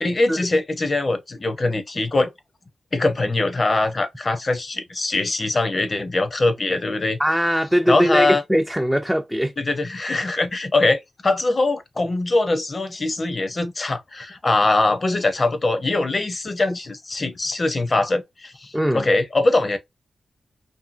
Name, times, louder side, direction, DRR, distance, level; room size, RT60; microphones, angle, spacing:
voice 1, 0.0-2.3 2.9-7.2 7.9-8.4 9.6-19.8, left 2 dB, 35° left, 0.7 m, -22 dB
voice 2, 7.2-9.5 18.7-19.1, equal, ahead, 0.3 m, -21 dB
2.7 x 2.6 x 2.5 m
wide cardioid pair, 100°, 0 cm